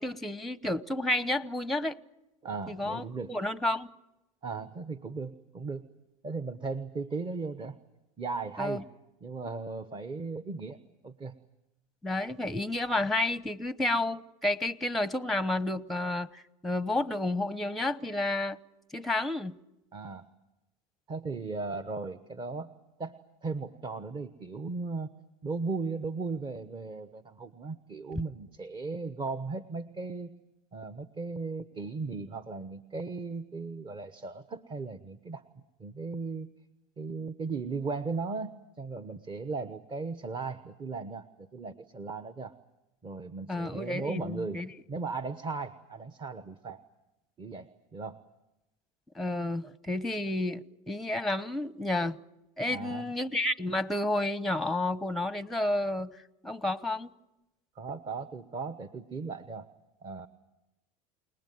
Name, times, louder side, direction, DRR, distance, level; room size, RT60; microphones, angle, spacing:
voice 1, 0.0-2.0 2.7-3.9 8.6-8.8 12.0-18.6 18.9-19.6 43.5-44.7 49.1-52.2 52.6-56.1 56.4-57.1, left 1 dB, ahead, 0.9 m, -31 dB
voice 2, 2.4-3.3 4.4-5.9 6.2-7.8 8.2-8.9 9.2-11.4 19.9-20.3 21.1-22.7 23.0-25.1 25.4-30.4 30.7-35.4 35.8-36.5 37.0-42.5 43.0-44.6 44.9-46.8 47.4-48.2 52.7-53.0 57.7-59.7 60.0-60.3, right 4 dB, 25° right, 1.1 m, -37 dB
29.5 x 19.0 x 9.4 m
supercardioid pair, 100°, 18 cm